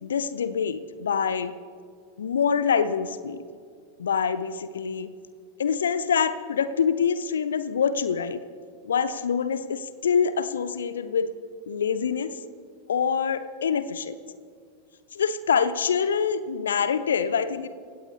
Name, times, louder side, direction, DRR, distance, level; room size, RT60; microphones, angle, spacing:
voice 1, 0.0-1.5 2.2-3.4 4.0-5.1 5.6-8.4 8.9-11.3 11.7-12.4 12.9-14.1 15.1-17.7, left 6 dB, 65° left, 13 dB, 0.6 m, -25 dB
27.5 x 17.0 x 2.2 m, 2.1 s
figure-of-eight pair, 90°, 0 cm